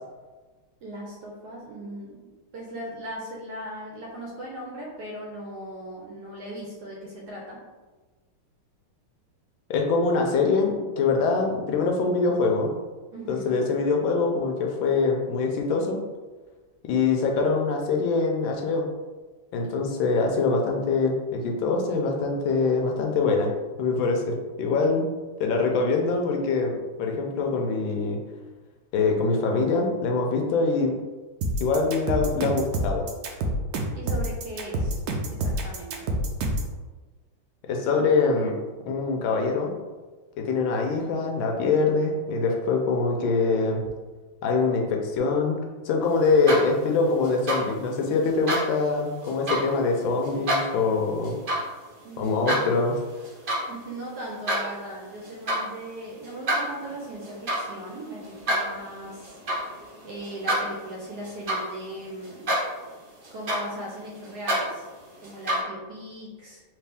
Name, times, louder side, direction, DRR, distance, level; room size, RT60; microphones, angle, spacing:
voice 1, 0.8-2.3 2.5-7.6 13.1-13.6 20.2-20.9 33.9-35.0 35.3-36.1 52.0-52.7 53.7-59.4 60.0-62.5 63.3-64.9 65.2-66.6, right 1 dB, 70° right, -3 dB, 1.0 m, -38 dB
voice 2, 9.7-12.7 13.3-16.0 16.8-18.8 19.5-23.5 23.8-25.0 25.4-28.2 28.9-30.9 31.6-33.0 37.7-38.6 38.9-39.7 40.5-43.8 44.4-45.6 45.8-51.3 52.2-53.0, left 4 dB, 80° left, 2 dB, 1.3 m, -24 dB
sound 1, 31.4-36.7, right 1 dB, 90° right, 0.8 m, -27 dB
sound 2, 46.2-46.9 47.2-47.6 48.2-48.6 49.2-49.6 50.2-50.6 51.2-51.6 52.0-52.6 53.1-53.7 54.0-54.6 55.2-55.6 56.2-62.0 62.2-62.9 63.2-65.6, right 1 dB, 50° right, 0.6 m, -28 dB
3.3 x 3.1 x 3.4 m, 1.3 s
omnidirectional pair, 2.2 m